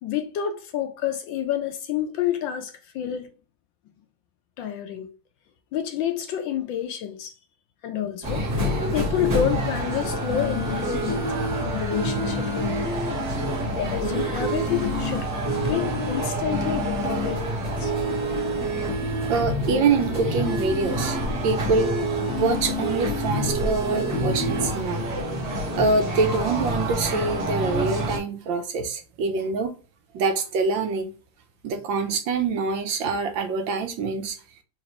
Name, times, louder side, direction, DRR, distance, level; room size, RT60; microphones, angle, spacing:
voice 1, 0.0-3.3 4.6-5.1 5.7-7.3 7.8-8.4 8.9-11.3 11.6-12.8 13.7-15.3 15.6-17.4 17.8-17.9, left 9 dB, 70° left, 1.2 m, -28 dB
sound 1, 8.2-28.2, equal, 20° right, 1.2 m, -27 dB
voice 2, 19.3-21.2 21.4-25.0 25.8-29.7 30.1-31.1 31.6-34.4, right 4 dB, 70° right, 1.3 m, -25 dB
4.0 x 2.8 x 3.0 m
omnidirectional pair, 2.3 m